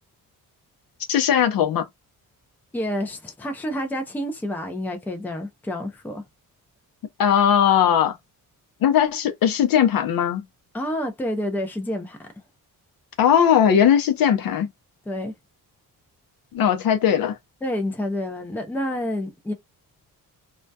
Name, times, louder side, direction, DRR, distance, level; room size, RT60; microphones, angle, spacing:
voice 1, 1.1-1.9 7.2-8.2 8.8-10.4 13.2-14.7 16.5-17.4, left 9 dB, 70° left, 0.5 m, -19 dB
voice 2, 2.7-6.2 10.7-12.2 15.1-15.3 17.6-19.5, left 1 dB, 5° left, 0.4 m, -28 dB
2.2 x 2.1 x 2.6 m
wide cardioid pair, 175°, 37 cm